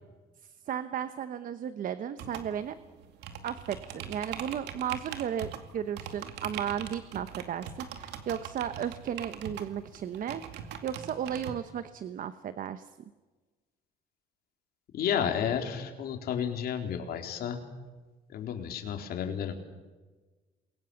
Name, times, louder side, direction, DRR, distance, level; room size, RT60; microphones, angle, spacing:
voice 1, 0.7-2.8 3.4-12.9, right 9 dB, 55° right, 11 dB, 1.1 m, -35 dB
sound 1, 2.2-11.5, right 8 dB, 80° right, 2.4 m, -42 dB
voice 2, 14.9-17.6 18.3-19.5, left 8 dB, 65° left, 3 dB, 4.0 m, -31 dB
28.5 x 22.5 x 7.2 m, 1.3 s
cardioid pair, 110°, 17 cm